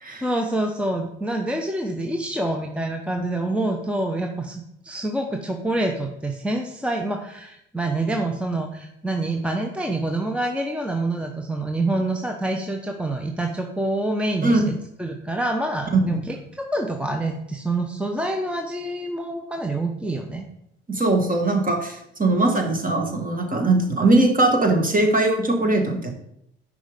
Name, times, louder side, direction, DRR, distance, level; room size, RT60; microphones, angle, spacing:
voice 1, 0.2-20.4, right 2 dB, 5° right, 3 dB, 0.9 m, -26 dB
voice 2, 14.4-14.7 16.1-16.2 20.9-26.1, right 2 dB, 25° right, 3 dB, 1.7 m, -20 dB
10.0 x 4.9 x 3.6 m, 0.78 s
figure-of-eight pair, 55°, 33 cm